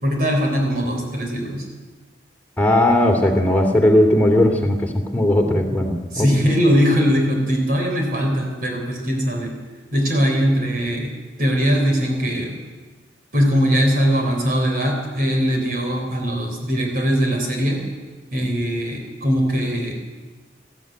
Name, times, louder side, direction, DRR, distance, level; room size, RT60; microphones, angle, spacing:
voice 1, 0.0-1.6 6.1-9.6 9.9-11.1 11.4-12.6 13.3-17.8 18.3-19.9, equal, 50° right, 1 dB, 3.9 m, -20 dB
voice 2, 2.6-6.5, left 1 dB, 10° left, 2 dB, 2.7 m, -17 dB
20.5 x 14.0 x 9.1 m, 1.3 s
head